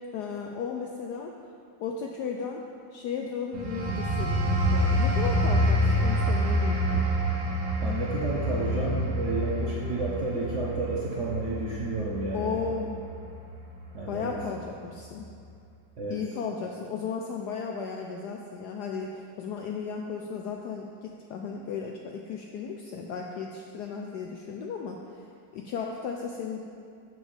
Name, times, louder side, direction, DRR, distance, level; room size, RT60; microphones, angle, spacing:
voice 1, 0.1-1.3 1.8-2.6 2.9-7.1 12.3-13.0 14.1-15.3 16.1-25.2 25.5-26.6, left 6 dB, 80° left, 1 dB, 0.9 m, -35 dB
sound 1, 3.5-13.9 14.3-14.6, equal, 85° right, 1.9 m, -27 dB
voice 2, 7.8-12.7 13.9-14.4 16.0-16.2, right 2 dB, 60° right, -4 dB, 0.8 m, -31 dB
6.2 x 5.5 x 7.0 m, 2.4 s
omnidirectional pair, 2.2 m